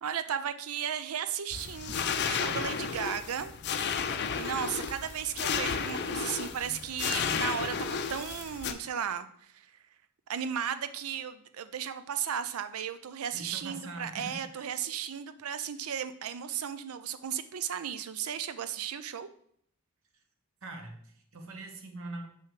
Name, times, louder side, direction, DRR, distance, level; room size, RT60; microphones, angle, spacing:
voice 1, 0.0-3.5 4.4-9.7 10.3-19.3, right 8 dB, 90° right, 12 dB, 0.5 m, -35 dB
sound 1, 1.5-8.7, left 6 dB, 50° left, 0.5 m, -33 dB
voice 2, 13.3-14.7 20.6-22.3, right 2 dB, 70° right, 4 dB, 0.9 m, -43 dB
6.3 x 5.6 x 3.2 m, 0.65 s
head